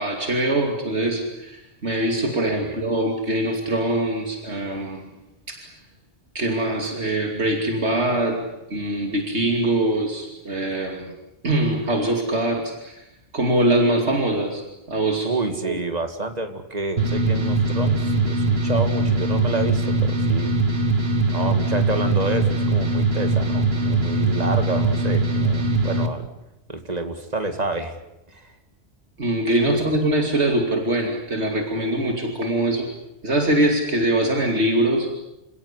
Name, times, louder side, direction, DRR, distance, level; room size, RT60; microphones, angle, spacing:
voice 1, 0.0-5.0 5.5-5.7 6.3-8.4 8.7-11.1 11.4-13.0 13.3-14.6 14.9-15.3 15.6-15.7 29.2-32.9 33.2-35.1, right 1 dB, 80° right, 2 dB, 3.1 m, -23 dB
voice 2, 15.2-20.6 21.3-26.3 26.7-28.0 28.3-28.5 29.7-29.8, right 2 dB, 35° right, 7 dB, 2.4 m, -29 dB
sound 1, 17.0-26.1, right 2 dB, 65° right, 2.2 m, -21 dB
28.0 x 17.5 x 9.9 m, 0.93 s
omnidirectional pair, 1.1 m